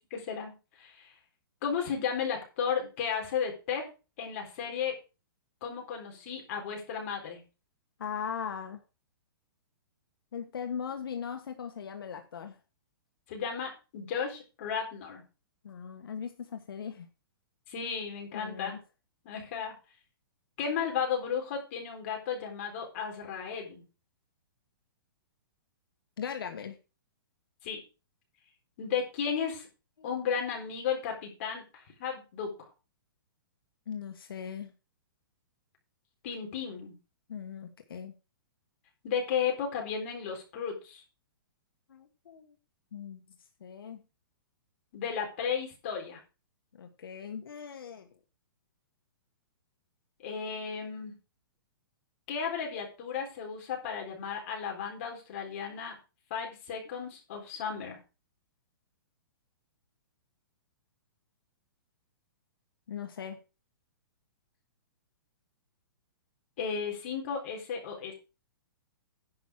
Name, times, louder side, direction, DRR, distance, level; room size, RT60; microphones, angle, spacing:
voice 1, 0.1-1.1 1.6-3.9 4.2-5.0 5.6-7.4 13.3-15.2 17.7-18.8 19.2-19.7 20.6-23.8 27.6-27.8 28.8-29.7 30.0-32.5 36.2-36.9 39.0-41.0 44.9-46.2 50.2-51.2 52.3-56.0 56.3-58.0 66.6-68.1, left 7 dB, 35° left, 1 dB, 3.9 m, -34 dB
voice 2, 8.0-8.8 10.3-12.6 15.6-17.1 18.3-18.8 26.2-26.8 30.0-30.1 33.9-34.7 37.3-38.1 41.9-42.6 42.9-43.2 43.6-44.0 46.7-48.1 62.9-63.4, left 7 dB, 75° left, 6 dB, 1.5 m, -39 dB
10.5 x 6.0 x 6.3 m, 0.31 s
hypercardioid pair, 175°, 12 cm